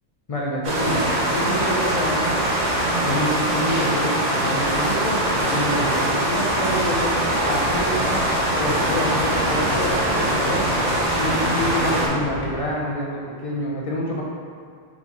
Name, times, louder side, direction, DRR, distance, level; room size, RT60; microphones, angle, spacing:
voice 1, 0.3-2.3 3.0-7.2 7.4-8.2 8.6-10.7 11.2-14.2, equal, 40° left, -3 dB, 0.5 m, -27 dB
sound 1, 0.6-12.1, right 1 dB, 50° right, 0.9 m, -22 dB
sound 2, 7.5-12.6, left 3 dB, 75° left, 1.1 m, -34 dB
4.1 x 4.1 x 2.9 m, 2.2 s
omnidirectional pair, 1.3 m